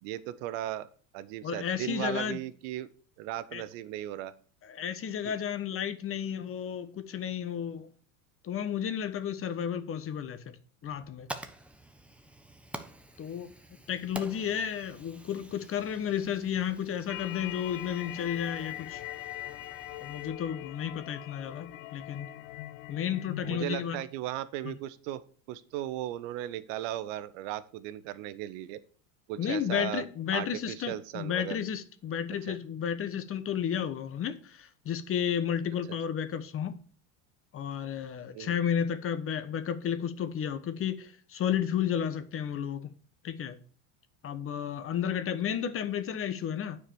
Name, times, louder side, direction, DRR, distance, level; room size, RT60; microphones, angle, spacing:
voice 1, 0.0-0.9 1.1-2.9 3.2-4.3 5.2-5.3 23.4-25.2 25.5-28.8 29.3-30.0 30.3-31.6 32.5-32.6 38.3-38.6, right 13 dB, 65° right, 0.9 m, -36 dB
voice 2, 1.4-2.4 3.5-3.6 4.6-7.9 8.4-10.6 10.8-11.3 13.2-13.5 13.9-19.0 20.0-22.3 22.9-24.0 24.6-24.7 29.4-36.8 37.5-42.9 43.2-43.6 44.2-46.8, left 9 dB, 30° left, 1.1 m, -32 dB
Fire, 10.8-20.3, right 1 dB, 5° right, 0.8 m, -48 dB
sound 1, 17.1-23.6, left 16 dB, 60° left, 0.7 m, -41 dB
9.0 x 4.9 x 6.8 m
supercardioid pair, 115°, 41 cm